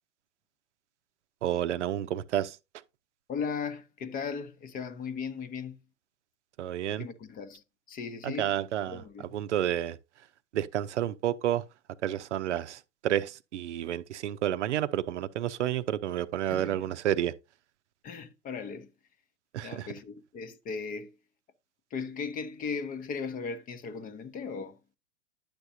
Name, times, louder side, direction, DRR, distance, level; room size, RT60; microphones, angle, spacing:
voice 1, 1.4-2.6 6.6-7.1 8.2-10.3 10.5-11.6 12.0-17.3 19.5-19.9, right 11 dB, 70° right, 0.6 m, -30 dB
voice 2, 3.3-5.8 7.0-8.5 8.9-9.4 16.5-16.8 18.0-18.9 19.6-21.1 21.9-24.8, left 5 dB, 25° left, 0.7 m, -37 dB
10.5 x 6.7 x 2.6 m
figure-of-eight pair, 100°, 36 cm